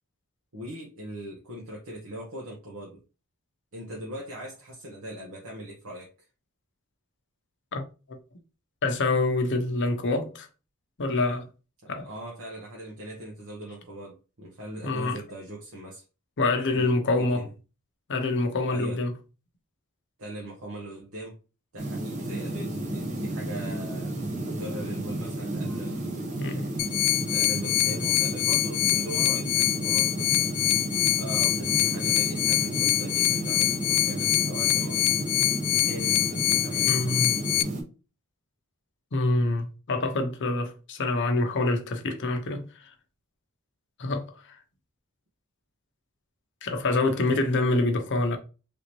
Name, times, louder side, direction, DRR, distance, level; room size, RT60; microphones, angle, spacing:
voice 1, 0.5-3.0 3.7-6.1 11.8-16.0 16.7-17.5 18.7-19.0 20.2-21.4 21.7-26.7 27.3-30.5 31.2-35.1 35.7-36.9 47.1-47.5, right 1 dB, 65° right, 0.9 m, -40 dB
voice 2, 8.8-10.5 11.0-11.5 11.9-12.1 14.8-15.2 16.4-17.5 18.1-19.1 26.4-26.7 36.8-37.3 39.1-42.6 44.0-44.3 46.6-48.4, left 2 dB, 55° left, 0.7 m, -26 dB
sound 1, 21.8-37.8, right 1 dB, 35° right, 0.8 m, -32 dB
sound 2, 26.8-37.6, left 17 dB, 90° left, 0.3 m, -25 dB
3.4 x 2.8 x 3.0 m
head